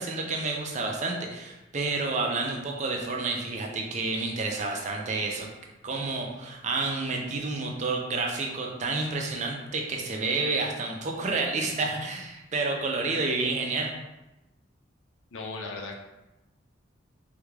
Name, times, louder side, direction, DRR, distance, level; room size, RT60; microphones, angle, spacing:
voice 1, 0.0-5.5 5.8-13.9, right 3 dB, 35° right, 0 dB, 0.5 m, -29 dB
voice 2, 15.3-16.0, left 3 dB, 80° left, 2 dB, 0.5 m, -36 dB
3.5 x 3.2 x 2.3 m, 1.0 s
head